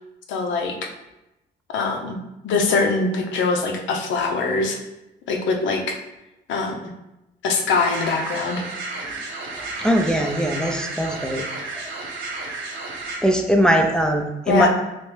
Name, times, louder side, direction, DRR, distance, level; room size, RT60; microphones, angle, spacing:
voice 1, 0.3-0.8 1.7-2.2 2.4-4.8 5.3-6.0 6.5-6.8 7.4-8.6 14.5-14.7, left 4 dB, 75° left, 2 dB, 0.6 m, -22 dB
sound 1, 7.7-13.2, right 3 dB, 75° right, 0.8 m, -32 dB
voice 2, 9.5-11.5 11.7-11.9 13.2-14.7, equal, 5° left, 2 dB, 0.4 m, -21 dB
3.2 x 3.0 x 3.2 m, 0.94 s
cardioid pair, 90°, 20 cm